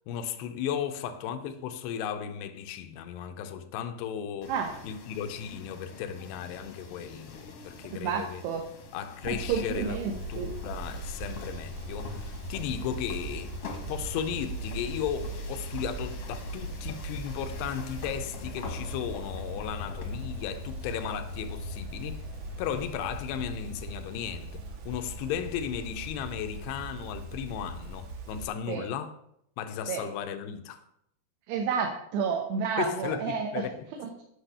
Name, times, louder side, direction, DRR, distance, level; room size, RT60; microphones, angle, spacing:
voice 1, 0.1-4.5 4.8-8.4 8.9-13.5 13.9-22.2 22.6-29.1 29.6-30.8 32.8-33.8, left 8 dB, 85° left, 2.8 m, -35 dB
sound 1, 4.4-23.2, left 3 dB, 60° left, 1.6 m, -46 dB
voice 2, 8.0-8.7 9.3-10.5 28.7-28.8 29.9-30.0 31.5-33.6 34.0-34.2, right 6 dB, 80° right, 3.1 m, -30 dB
sound 2, 9.2-28.5, right 1 dB, 60° right, 1.7 m, -39 dB
9.9 x 6.3 x 6.7 m
omnidirectional pair, 4.9 m